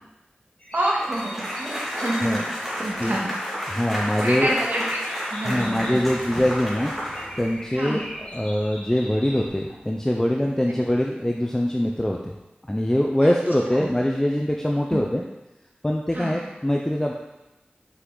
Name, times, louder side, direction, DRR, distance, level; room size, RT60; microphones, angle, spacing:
sound 1, 0.6-3.5 3.8-3.9 4.1-4.4 4.8-9.5, equal, 35° left, 2.0 m, -42 dB
voice 1, 0.7-3.3 4.2-5.0 5.3-6.0 7.7-8.0 13.2-13.3 13.7-13.9 14.9-15.0 16.1-16.4, right 1 dB, 60° right, -3 dB, 1.7 m, -28 dB
sound 2, 1.0-7.7, equal, ahead, 2.4 m, -31 dB
voice 2, 3.0-3.3 3.7-4.5 5.4-12.3 12.7-15.3 15.8-17.1, left 1 dB, 15° left, 0 dB, 0.6 m, -23 dB
sound 3, 6.0-10.9, left 1 dB, 60° left, 1.8 m, -46 dB
6.0 x 5.9 x 3.9 m, 0.99 s
wide cardioid pair, 50°, 4 cm